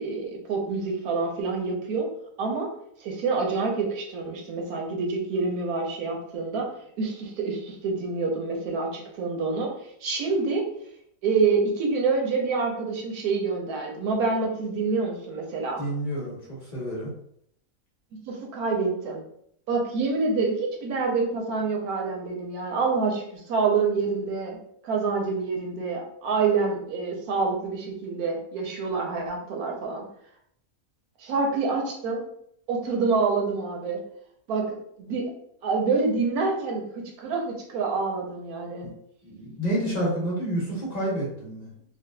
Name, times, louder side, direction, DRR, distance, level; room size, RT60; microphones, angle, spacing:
voice 1, 0.0-2.1 2.4-2.7 3.0-6.7 7.0-9.7 10.0-10.7 11.2-15.8 18.1-19.2 19.7-24.6 24.8-30.1 31.2-32.2 32.7-34.0 34.5-35.3 35.6-38.9, right 4 dB, 85° right, 0 dB, 1.2 m, -27 dB
voice 2, 15.8-17.1 38.8-38.9 39.2-41.7, right 1 dB, 30° left, -6 dB, 1.1 m, -29 dB
3.9 x 2.1 x 2.2 m, 0.70 s
omnidirectional pair, 1.5 m